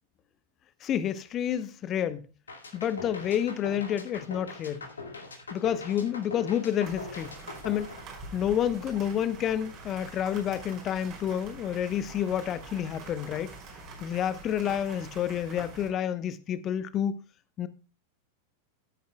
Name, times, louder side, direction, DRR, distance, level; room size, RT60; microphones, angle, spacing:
voice 1, 0.8-2.2 2.7-4.9 5.5-7.3 7.6-8.0 8.3-13.5 14.0-17.1 17.6-17.7, left 9 dB, 30° left, 0.8 m, -29 dB
sound 1, 2.5-8.7, left 3 dB, 70° left, 2.2 m, -42 dB
sound 2, 6.8-15.9, right 3 dB, 35° right, 5.4 m, -45 dB
16.5 x 9.5 x 2.3 m
figure-of-eight pair, 90°, 0 cm